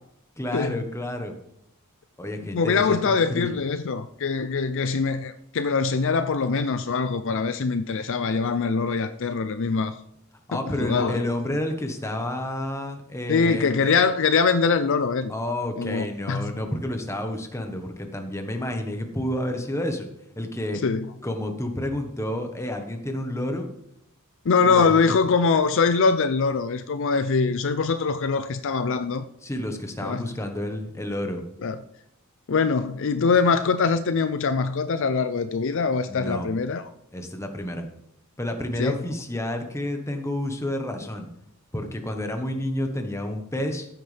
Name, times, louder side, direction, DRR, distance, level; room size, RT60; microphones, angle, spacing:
voice 1, 0.4-1.3 2.2-3.5 10.5-13.9 15.3-20.1 20.4-20.8 21.2-23.7 24.6-25.1 29.4-31.4 36.1-36.5 37.1-37.9 38.4-41.3 41.7-43.9, left 1 dB, 15° left, 1.2 m, -30 dB
voice 2, 2.5-10.0 10.5-11.2 13.3-15.3 15.8-16.5 20.8-21.1 24.5-29.3 30.0-30.3 31.6-31.8 32.5-36.8 38.8-39.0, left 5 dB, 60° left, 0.5 m, -23 dB
14.5 x 9.4 x 3.4 m
head